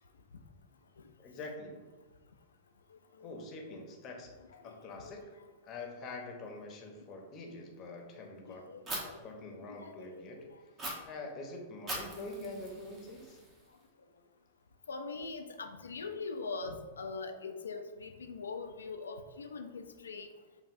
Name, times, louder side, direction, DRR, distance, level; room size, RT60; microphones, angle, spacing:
voice 1, 1.2-1.9 3.2-4.3 4.6-5.2 5.6-8.7 9.2-13.4, left 2 dB, 35° left, 2 dB, 0.8 m, -45 dB
voice 2, 8.5-9.2 9.6-10.5 14.9-20.3, left 4 dB, 80° left, 6 dB, 0.4 m, -42 dB
Fire, 8.9-9.0 10.8-10.9 11.9-13.8, right 1 dB, 30° right, 1.0 m, -41 dB
5.2 x 2.4 x 2.5 m, 1.3 s
figure-of-eight pair, 100°, 0 cm